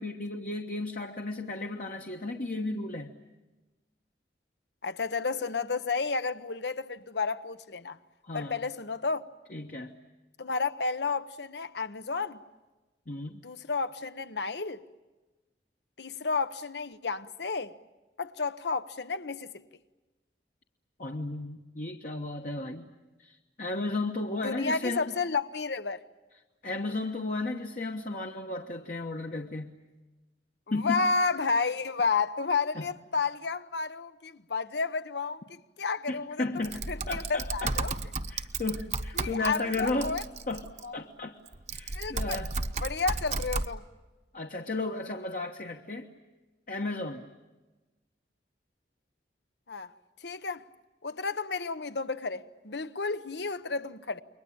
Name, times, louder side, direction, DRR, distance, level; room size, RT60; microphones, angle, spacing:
voice 1, 0.0-3.1 8.2-8.7 9.5-10.0 13.1-13.4 21.0-22.9 23.2-25.2 26.6-29.8 30.7-31.1 32.7-32.9 36.1-37.8 38.3-40.1 40.5-40.7 40.9-41.4 41.7-42.5 44.3-46.1 46.7-47.3, left 2 dB, 50° left, 1.3 m, -34 dB
voice 2, 4.8-8.0 8.3-9.2 10.4-12.4 13.4-14.8 16.0-17.7 18.2-19.6 24.4-26.0 30.8-35.4 35.8-36.4 36.9-37.9 39.2-40.2 40.8-40.9 41.9-42.4 42.8-43.8 49.7-49.9 50.2-50.6 51.0-54.2, left 4 dB, 70° left, 1.0 m, -31 dB
Typing, 36.6-40.8 41.5-43.7, right 3 dB, 40° right, 1.0 m, -34 dB
29.0 x 23.0 x 8.7 m
head